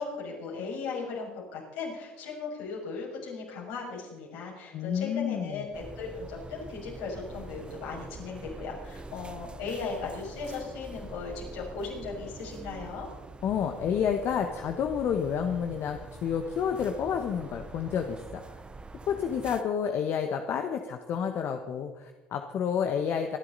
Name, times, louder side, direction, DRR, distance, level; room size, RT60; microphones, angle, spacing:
voice 1, 0.0-13.1, left 4 dB, 75° left, -3 dB, 6.3 m, -37 dB
voice 2, 4.7-5.6 13.4-18.6 19.1-23.4, left 7 dB, 55° left, 5 dB, 1.3 m, -30 dB
sound 1, 5.7-19.6, right 3 dB, 20° right, 1.1 m, -45 dB
26.0 x 11.0 x 4.1 m, 1.2 s
hypercardioid pair, 65°, 5 cm